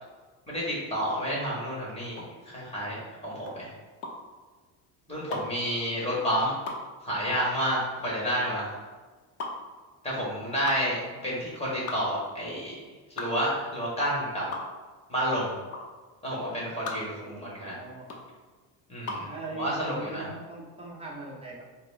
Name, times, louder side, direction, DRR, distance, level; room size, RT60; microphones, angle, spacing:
voice 1, 0.5-3.7 5.1-6.5 7.0-8.8 10.0-12.8 13.2-14.4 15.1-15.5 16.2-17.7 18.9-19.3 19.6-20.2, equal, 15° left, -5 dB, 1.4 m, -30 dB
sound 1, 2.1-19.4, left 2 dB, 35° left, 0.6 m, -40 dB
voice 2, 11.0-11.3 17.2-18.1 19.2-21.6, right 3 dB, 15° right, -3 dB, 0.8 m, -41 dB
4.3 x 2.1 x 4.0 m, 1.3 s
cardioid pair, 130°, 41 cm